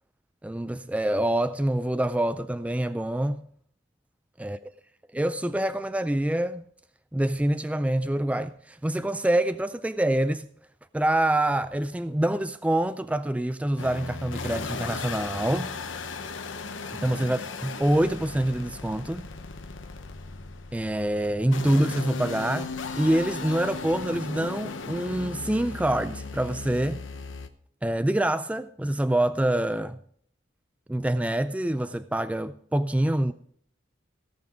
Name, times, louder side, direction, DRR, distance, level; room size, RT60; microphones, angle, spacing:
voice 1, 0.4-3.5 4.4-4.6 5.1-6.6 7.1-10.5 10.9-15.8 16.9-19.3 20.7-22.7 23.0-27.0 27.8-30.0 30.9-33.3, right 1 dB, 5° right, 0.3 m, -26 dB
sound 1, 13.8-27.5, left 4 dB, 90° left, 0.9 m, -37 dB
17.0 x 6.0 x 5.0 m
head